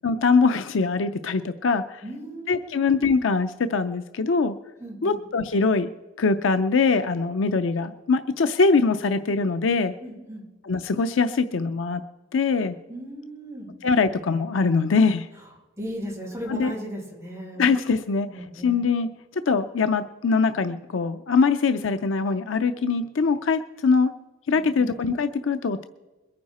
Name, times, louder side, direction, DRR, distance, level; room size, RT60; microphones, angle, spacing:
voice 1, 0.0-2.0 2.5-4.5 5.0-5.9 6.2-9.9 10.6-12.0 12.3-12.8 13.8-15.3 16.5-16.7 17.6-18.3 18.6-19.1 19.5-24.1 24.5-25.8, left 4 dB, 90° left, 9 dB, 0.5 m, -22 dB
voice 2, 2.0-2.8 4.8-5.2 10.0-10.4 12.9-13.7 15.8-17.6 18.3-18.7 24.6-24.9, equal, 15° right, -5 dB, 6.1 m, -36 dB
22.0 x 9.6 x 4.2 m, 1.2 s
head